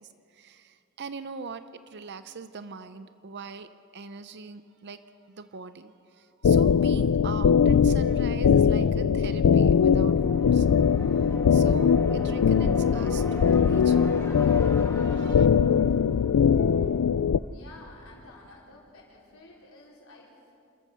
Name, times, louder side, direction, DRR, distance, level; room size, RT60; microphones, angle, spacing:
voice 1, 0.0-10.7 11.2-14.2 15.0-15.5, right 4 dB, 50° right, 11 dB, 0.6 m, -42 dB
sound 1, 6.4-17.4, left 7 dB, 90° left, 0.4 m, -21 dB
sound 2, 9.3-17.1, equal, 15° left, 2.6 m, -41 dB
voice 2, 17.3-20.5, left 2 dB, 65° left, -4 dB, 4.5 m, -51 dB
28.5 x 14.0 x 6.9 m, 2.5 s
head